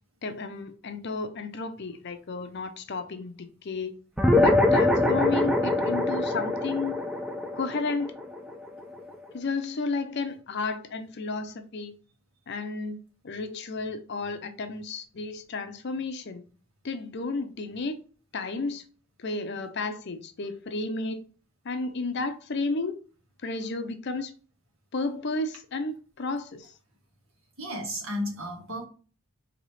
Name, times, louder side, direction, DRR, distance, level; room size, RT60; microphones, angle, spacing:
voice 1, 0.2-4.0 4.3-7.0 7.5-8.1 9.3-11.9 12.5-13.0 13.2-16.4 16.8-18.0 18.3-18.8 19.2-21.2 21.6-23.0 23.4-24.3 24.9-26.7, left 3 dB, 50° left, 0.5 m, -32 dB
sound 1, 4.2-9.0, left 2 dB, ahead, 0.3 m, -24 dB
voice 2, 27.6-28.8, equal, 70° right, 1.7 m, -33 dB
4.0 x 2.9 x 3.2 m
head